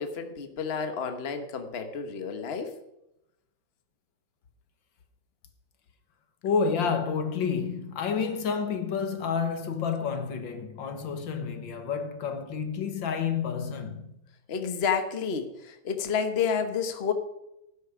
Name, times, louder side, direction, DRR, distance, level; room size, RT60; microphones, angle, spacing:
voice 1, 0.0-2.8 14.5-17.1, left 6 dB, 35° left, 1.3 m, -30 dB
voice 2, 6.4-14.2, left 6 dB, 75° left, 1.9 m, -29 dB
17.5 x 9.5 x 5.0 m
omnidirectional pair, 2.1 m